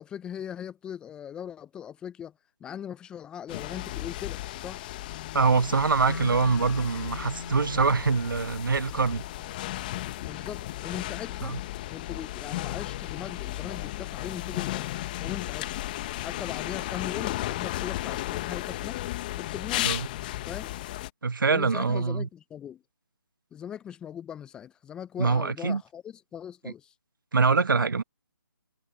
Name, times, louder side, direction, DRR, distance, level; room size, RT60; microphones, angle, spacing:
voice 1, 0.0-2.3 2.6-4.9 10.2-11.6 11.9-14.9 15.2-15.7 16.2-19.0 19.4-19.9 20.5-20.7 21.5-22.8 23.5-26.9, left 9 dB, 5° left, 0.6 m, -40 dB
sound 1, 3.5-21.1, left 16 dB, 25° left, 1.0 m, -34 dB
voice 2, 5.3-9.2 11.4-11.6 19.8-20.1 21.2-22.3 25.2-25.8 26.6-26.7 27.3-28.0, right 4 dB, 65° right, 1.5 m, -24 dB
sound 2, 6.1-16.1, left 4 dB, 65° left, 7.0 m, -46 dB
figure-of-eight pair, 150°, 12 cm